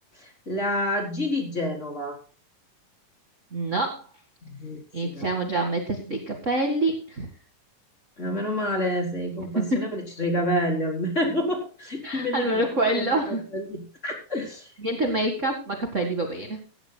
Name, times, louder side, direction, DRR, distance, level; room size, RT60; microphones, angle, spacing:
voice 1, 0.1-2.2 4.4-5.3 8.2-14.7, left 1 dB, 20° left, 1 dB, 4.2 m, -29 dB
voice 2, 3.5-4.1 4.9-7.3 9.5-10.0 12.0-13.4 14.8-16.6, right 2 dB, 30° right, 3 dB, 1.7 m, -26 dB
17.5 x 16.0 x 2.3 m, 0.36 s
omnidirectional pair, 3.9 m